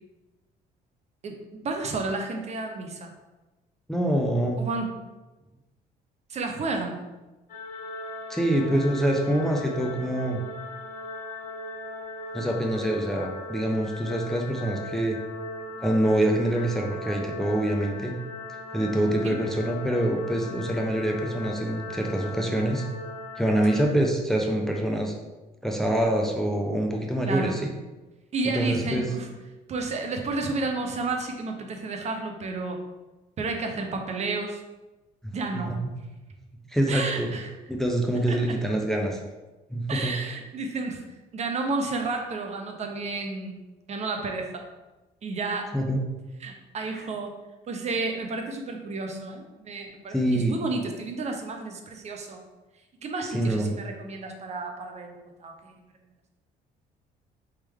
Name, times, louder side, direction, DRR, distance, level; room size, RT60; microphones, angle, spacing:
voice 1, 1.2-3.1 4.6-4.9 6.3-7.0 19.2-19.4 23.7-23.9 27.3-27.6 28.3-29.3 29.7-32.8 33.4-34.6 35.3-35.7 36.9-37.5 38.3-38.6 39.9-41.0 41.3-43.6 43.9-44.7 45.2-45.7 46.4-47.3 47.7-52.4 53.0-55.7, right 3 dB, 40° right, 4 dB, 0.7 m, -31 dB
voice 2, 3.9-4.6 8.3-10.4 12.3-15.2 15.8-18.1 18.7-22.8 23.4-25.1 25.6-27.7 28.5-29.1 35.7-35.9 36.7-37.3 37.7-39.2 39.7-40.1 45.7-46.0 50.1-50.6 53.3-53.7, right 1 dB, ahead, 1 dB, 0.5 m, -25 dB
sound 1, 7.5-23.9, left 2 dB, 50° left, 1.2 m, -39 dB
4.2 x 3.6 x 3.4 m, 1.1 s
cardioid pair, 110°, 17 cm